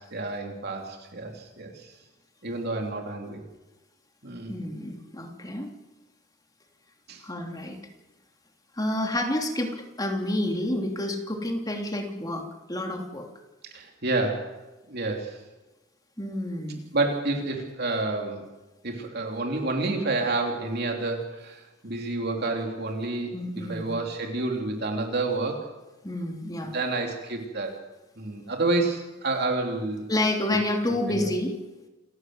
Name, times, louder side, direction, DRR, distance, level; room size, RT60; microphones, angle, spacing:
voice 1, 0.1-1.9 2.4-3.4 4.2-4.5 7.1-7.2 13.7-14.5 14.9-15.4 16.9-18.4 18.8-25.7 26.6-27.8 28.2-30.1 31.0-31.3, right 2 dB, 50° right, 2 dB, 3.3 m, -29 dB
voice 2, 4.5-5.7 7.2-7.8 8.8-13.3 16.2-16.9 23.3-23.9 26.0-26.7 30.1-31.5, left 1 dB, 20° left, 2 dB, 3.0 m, -29 dB
28.5 x 13.0 x 8.0 m, 1.1 s
head